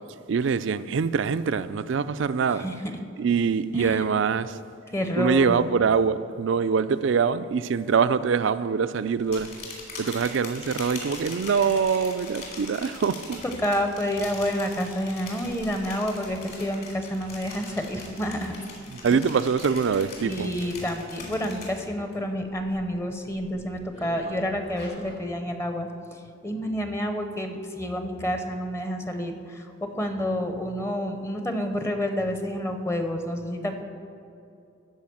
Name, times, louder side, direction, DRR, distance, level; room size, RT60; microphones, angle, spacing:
voice 1, 0.3-2.7 3.2-4.6 5.2-9.5 10.0-13.4 19.0-20.5, right 6 dB, 65° right, 0.4 m, -24 dB
voice 2, 3.7-4.1 4.9-5.7 13.4-18.5 20.2-33.8, equal, 15° left, 0.7 m, -29 dB
sound 1, 9.2-22.1 22.5-22.9 23.3-25.2, left 3 dB, 50° left, 2.8 m, -42 dB
13.0 x 4.9 x 7.7 m
head